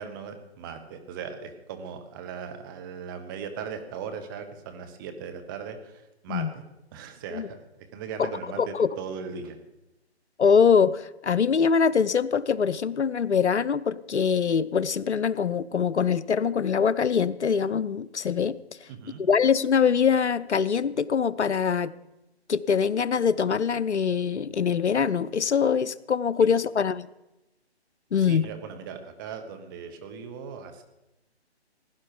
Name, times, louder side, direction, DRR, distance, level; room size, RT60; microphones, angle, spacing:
voice 1, 0.0-6.6 6.9-9.6 18.9-19.2 28.2-30.8, right 6 dB, 20° right, 6 dB, 1.1 m, -38 dB
voice 2, 8.6-8.9 10.4-18.6 19.2-21.9 22.5-27.1 28.1-28.5, left 6 dB, 85° left, 18 dB, 0.7 m, -23 dB
17.0 x 10.5 x 5.0 m, 0.94 s
figure-of-eight pair, 145°, 33 cm